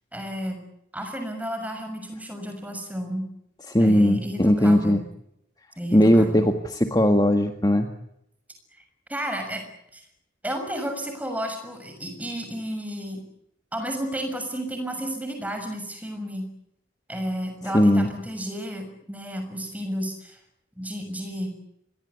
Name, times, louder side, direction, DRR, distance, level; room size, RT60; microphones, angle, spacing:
voice 1, 0.1-0.6 0.9-3.3 3.8-5.0 5.8-6.5 9.1-9.6 9.9-10.0 10.4-13.2 13.7-16.4 17.1-20.4 20.8-21.5, equal, 10° right, 5 dB, 6.6 m, -32 dB
voice 2, 3.7-5.0 5.9-7.9 17.7-18.1, equal, 20° left, 6 dB, 1.8 m, -19 dB
27.0 x 21.5 x 8.4 m, 0.78 s
head